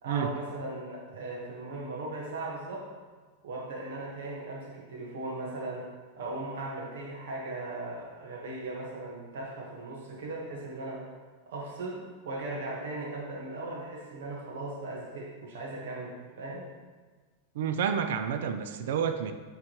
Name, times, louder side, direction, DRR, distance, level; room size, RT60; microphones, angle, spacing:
voice 1, 0.0-2.9 3.4-5.8 6.1-11.1 11.5-16.7, right 2 dB, 80° right, -3 dB, 1.4 m, -38 dB
voice 2, 17.6-19.3, right 7 dB, 60° right, 8 dB, 0.4 m, -29 dB
8.6 x 3.6 x 3.1 m, 1.4 s
supercardioid pair, 175°, 0 cm